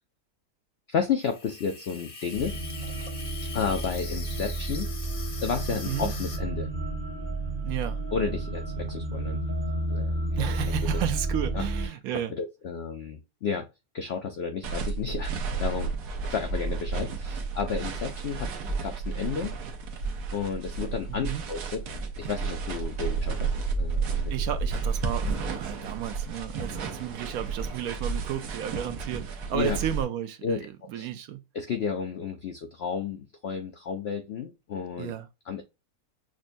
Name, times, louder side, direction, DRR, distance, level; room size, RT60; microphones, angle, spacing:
voice 1, 0.9-2.6 3.5-4.9 5.4-6.7 8.1-9.4 9.9-10.5 10.8-11.0 11.5-11.7 12.3-13.7 13.9-15.9 16.2-18.5 18.8-19.6 20.3-21.8 22.2-24.3 29.5-29.8 30.4-30.6 30.9-31.1 31.5-35.1 35.5-35.6, left 6 dB, 75° left, 0.6 m, -32 dB
Water tap faucet / Sink (filling or washing), 1.2-6.4, left 3 dB, 35° left, 0.7 m, -42 dB
sound 1, 2.3-11.9, right 2 dB, 55° right, 1.3 m, -31 dB
voice 2, 5.7-6.1 7.6-8.0 10.4-12.3 21.1-21.4 24.3-31.4 35.0-35.3, right 11 dB, 75° right, 1.0 m, -33 dB
sound 2, 14.6-30.0, right 4 dB, 90° right, 1.3 m, -32 dB
6.1 x 2.2 x 2.5 m
omnidirectional pair, 1.6 m